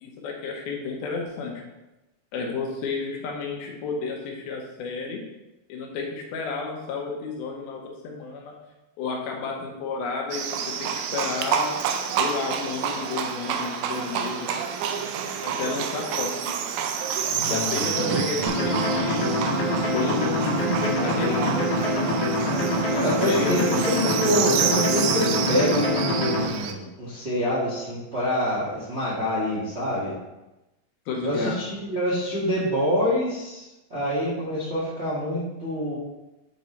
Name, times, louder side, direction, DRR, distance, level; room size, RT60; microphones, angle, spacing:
voice 1, 0.0-1.5 2.3-5.2 5.7-8.5 9.0-11.7 12.2-14.6 15.4-16.6 17.4-19.2 19.9-21.5 23.2-24.5 31.1-31.7, left 4 dB, 80° left, 0 dB, 2.9 m, -31 dB
Livestock farm animals working animals, 10.3-26.7, right 7 dB, 85° right, 2.4 m, -29 dB
voice 2, 17.3-19.1 22.9-30.2 31.2-36.0, equal, 65° right, -8 dB, 0.6 m, -27 dB
sound 1, 18.5-26.5, left 1 dB, 55° left, 1.1 m, -25 dB
9.7 x 4.0 x 3.2 m, 1.0 s
omnidirectional pair, 4.3 m